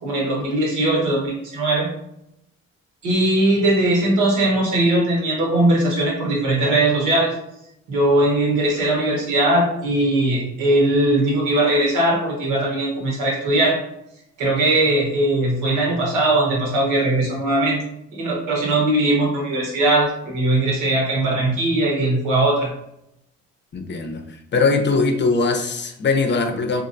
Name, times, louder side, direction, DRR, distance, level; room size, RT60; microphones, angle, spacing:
voice 1, 0.0-1.9 3.0-7.3 7.9-13.8 14.4-17.8 18.1-22.7, right 1 dB, 90° right, -1 dB, 1.2 m, -19 dB
voice 2, 23.7-24.2 24.5-26.8, left 4 dB, 35° left, 5 dB, 0.6 m, -20 dB
3.1 x 2.5 x 2.6 m, 0.80 s
cardioid pair, 90°, 30 cm